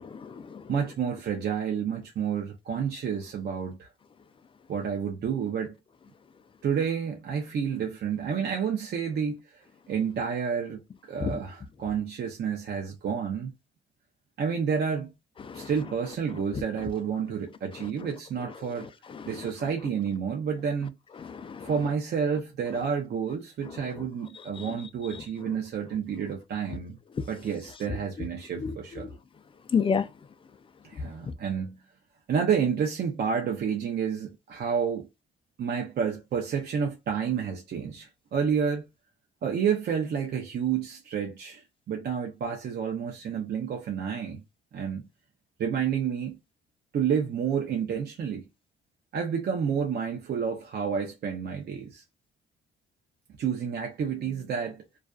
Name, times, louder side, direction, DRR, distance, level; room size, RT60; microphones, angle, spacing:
voice 1, 0.1-0.6 11.3-11.4 15.5-15.7 19.2-19.3 21.2-21.7 24.6-24.7 28.6-28.7 29.7-30.0, left 6 dB, 25° left, 0.3 m, -29 dB
voice 2, 0.7-3.9 4.7-5.7 6.6-10.8 11.1-13.5 14.4-15.1 15.5-18.9 19.3-21.0 21.6-27.0 27.3-29.1 30.8-31.8 32.3-35.1 35.6-38.9 39.4-44.4 44.7-45.1 45.6-46.4 46.9-48.4 49.1-52.0 53.4-54.8, right 7 dB, 55° right, 0.6 m, -30 dB
2.4 x 2.2 x 2.4 m
cardioid pair, 90°, 20 cm